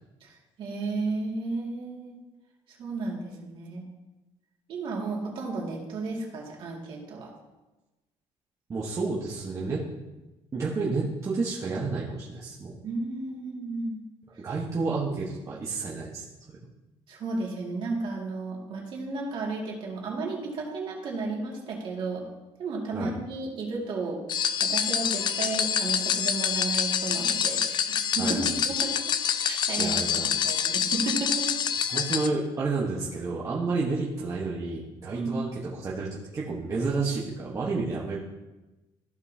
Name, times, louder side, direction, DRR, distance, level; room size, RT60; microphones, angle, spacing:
voice 1, 0.2-2.2 2.8-3.8 4.7-7.3 12.8-14.0 17.1-22.2 22.6-24.2 24.6-29.0 29.4-30.0 30.4-31.5 35.1-35.4, right 3 dB, 50° right, -2 dB, 2.2 m, -33 dB
voice 2, 8.7-9.8 10.5-12.7 14.4-16.6 22.9-23.1 28.2-28.5 29.8-30.4 31.9-36.1 36.3-38.2, right 3 dB, 30° right, -6 dB, 1.1 m, -30 dB
sound 1, 24.3-32.3, left 8 dB, 45° left, 0.4 m, -26 dB
14.5 x 5.3 x 2.8 m, 1.1 s
cardioid pair, 145°, 11 cm